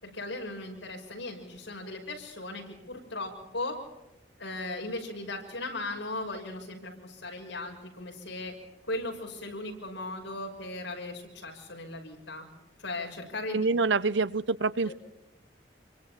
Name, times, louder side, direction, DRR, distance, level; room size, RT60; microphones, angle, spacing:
voice 1, 0.0-3.8 4.4-8.5 8.9-12.4 12.8-13.7 14.8-14.9, left 2 dB, 75° left, 1 dB, 6.4 m, -37 dB
voice 2, 13.5-14.9, right 3 dB, 70° right, 17 dB, 0.7 m, -26 dB
27.0 x 24.0 x 4.4 m, 0.96 s
head